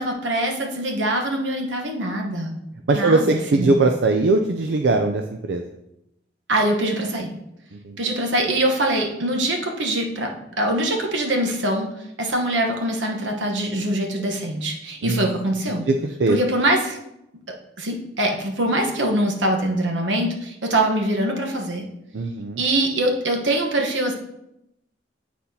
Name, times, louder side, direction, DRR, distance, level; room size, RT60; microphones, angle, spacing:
voice 1, 0.0-2.5 2.9-3.7 6.5-7.3 8.0-11.9 12.2-15.8 16.3-17.0 17.8-21.8 22.6-24.1, right 1 dB, 85° right, 2 dB, 1.1 m, -23 dB
voice 2, 2.9-5.6 7.7-8.0 15.0-15.3 15.9-16.4 22.1-22.6, right 3 dB, 70° right, 4 dB, 0.4 m, -20 dB
9.4 x 4.2 x 2.8 m, 0.84 s
head